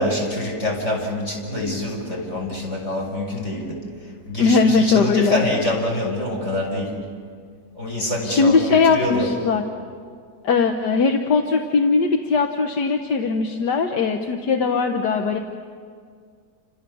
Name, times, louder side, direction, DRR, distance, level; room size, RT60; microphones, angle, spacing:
voice 1, 0.0-3.8 4.3-6.9 7.7-9.3, left 1 dB, 45° left, 0 dB, 6.6 m, -25 dB
voice 2, 4.4-5.4 8.2-9.6 10.4-15.4, left 4 dB, 90° left, 4 dB, 1.8 m, -19 dB
30.0 x 26.5 x 7.1 m, 2.1 s
omnidirectional pair, 1.7 m